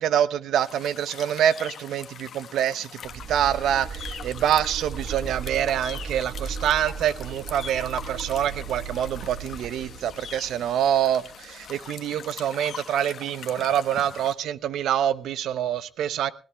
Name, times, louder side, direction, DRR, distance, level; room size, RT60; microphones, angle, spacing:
voice 1, 0.0-16.3, right 10 dB, 80° right, 0.7 m, -26 dB
sound 1, 0.5-14.3, left 8 dB, 60° left, 1.2 m, -42 dB
sound 2, 3.1-11.9, right 6 dB, 60° right, 1.1 m, -37 dB
20.5 x 17.0 x 2.3 m
cardioid pair, 90°, 0 cm